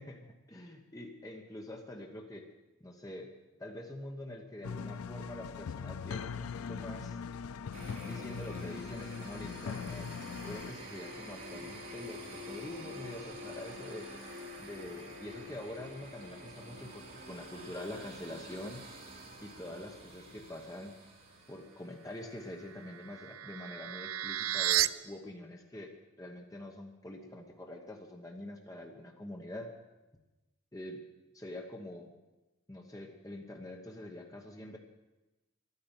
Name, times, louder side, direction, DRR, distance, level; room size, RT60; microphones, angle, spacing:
voice 1, 0.0-2.5 2.8-3.3 3.6-7.2 8.0-10.1 10.4-14.1 14.6-18.8 19.4-21.0 21.5-25.9 26.2-29.7 30.7-31.0 31.3-32.1 32.7-34.8, left 1 dB, 15° left, 2 dB, 1.0 m, -45 dB
sound 1, 4.6-10.7, left 6 dB, 85° left, 0.4 m, -40 dB
sound 2, 7.7-22.5, equal, 40° right, 3.3 m, -47 dB
sound 3, 22.6-24.9, right 13 dB, 70° right, 0.5 m, -33 dB
12.5 x 9.8 x 9.0 m, 1.1 s
head